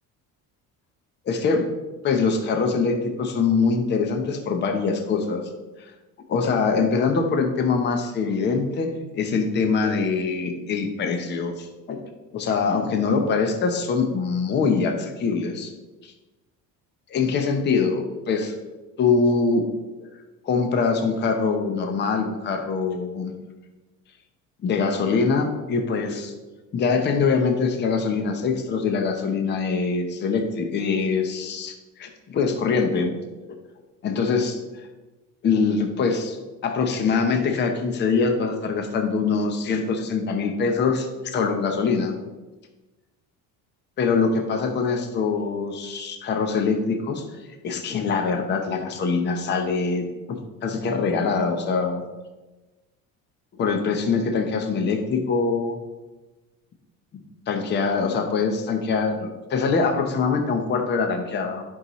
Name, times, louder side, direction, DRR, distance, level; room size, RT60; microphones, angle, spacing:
voice 1, 1.3-1.7 2.0-5.4 5.8-5.9 6.3-15.7 17.1-18.5 19.0-19.7 20.4-23.3 24.6-26.3 26.7-33.1 34.0-34.6 35.4-36.4 36.6-42.2 44.0-47.2 47.6-52.0 53.6-55.8 57.5-61.6, left 4 dB, 30° left, 5 dB, 0.7 m, -23 dB
10.5 x 5.6 x 3.0 m, 1.1 s
cardioid pair, 180°, 34 cm